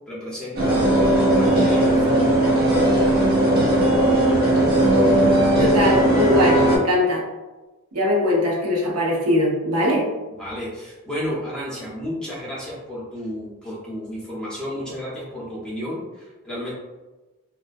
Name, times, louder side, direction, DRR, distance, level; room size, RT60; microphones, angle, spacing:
voice 1, 0.1-2.5 10.4-16.7, equal, 5° left, -8 dB, 0.7 m, -32 dB
sound 1, 0.6-6.8, right 1 dB, 45° right, 0.7 m, -18 dB
voice 2, 5.6-7.2 7.9-10.1, left 1 dB, 90° right, -3 dB, 0.7 m, -21 dB
2.3 x 2.1 x 2.5 m, 1.2 s
head